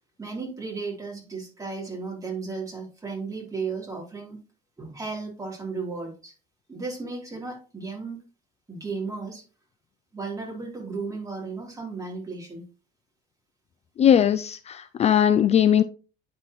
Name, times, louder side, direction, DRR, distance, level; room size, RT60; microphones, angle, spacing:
voice 1, 0.2-4.4 4.8-6.3 6.7-8.2 8.7-9.4 10.1-12.6, right 4 dB, 20° right, 3.4 m, -34 dB
voice 2, 14.0-15.8, left 9 dB, 40° left, 0.4 m, -19 dB
9.6 x 4.3 x 3.1 m
cardioid pair, 105°, 17 cm